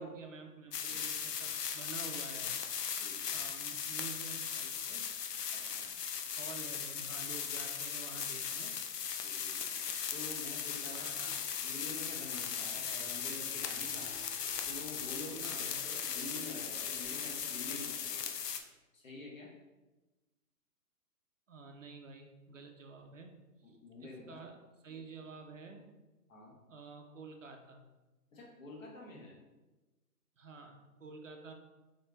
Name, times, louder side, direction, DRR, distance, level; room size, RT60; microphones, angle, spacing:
voice 1, 0.0-2.5 3.3-5.1 6.4-8.7 10.9-11.4 15.4-15.8 21.5-25.9 26.7-27.8 30.4-31.5, right 4 dB, 55° right, 4 dB, 0.5 m, -50 dB
sound 1, 0.7-18.6, left 7 dB, 80° left, 0.6 m, -38 dB
voice 2, 5.5-5.9 9.2-9.6 10.1-14.2 14.7-18.2 18.9-19.5 23.6-24.4 26.3-26.5 28.3-29.4, left 2 dB, 55° left, -1 dB, 1.2 m, -48 dB
sound 2, 10.3-18.5, right 1 dB, ahead, 1.0 m, -58 dB
3.8 x 3.3 x 3.1 m, 1.1 s
hypercardioid pair, 170°, 47 cm